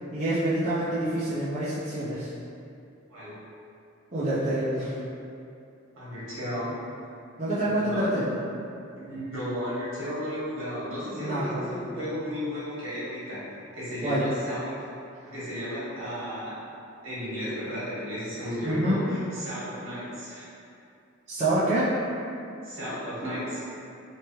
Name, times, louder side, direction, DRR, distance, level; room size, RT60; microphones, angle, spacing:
voice 1, 0.1-2.3 4.1-5.0 7.4-8.3 11.1-11.7 14.0-14.3 18.6-19.0 21.3-21.9, right 1 dB, 30° right, -12 dB, 0.5 m, -27 dB
voice 2, 5.9-6.8 7.6-8.0 9.0-14.7 15.2-16.5 17.0-20.4 22.6-23.6, equal, 75° right, -10 dB, 1.4 m, -34 dB
3.3 x 3.1 x 2.9 m, 2.6 s
head